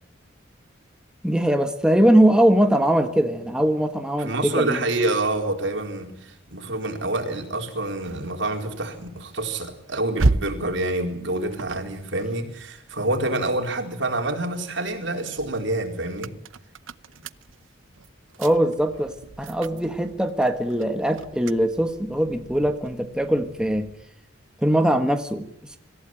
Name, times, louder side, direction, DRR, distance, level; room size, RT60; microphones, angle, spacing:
voice 1, 1.2-4.8 18.4-23.9 24.6-25.8, right 1 dB, 5° right, 6 dB, 1.3 m, -21 dB
voice 2, 4.2-16.3, right 2 dB, 70° right, 4 dB, 4.3 m, -27 dB
sound 1, 7.3-13.8 14.3-24.1, right 2 dB, 90° right, 0.8 m, -34 dB
26.0 x 15.0 x 9.1 m, 0.78 s
head